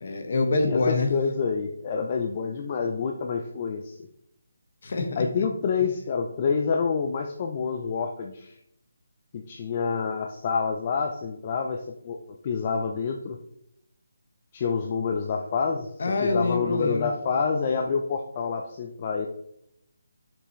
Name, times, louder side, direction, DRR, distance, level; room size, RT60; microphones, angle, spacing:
voice 1, 0.0-1.1 4.8-5.4 16.0-17.1, left 3 dB, 55° left, 5 dB, 1.3 m, -25 dB
voice 2, 0.6-4.0 5.2-8.6 9.3-13.4 14.5-15.9 16.2-19.3, left 5 dB, 35° left, 3 dB, 0.5 m, -28 dB
6.0 x 5.3 x 3.1 m, 0.77 s
figure-of-eight pair, 155°, 0 cm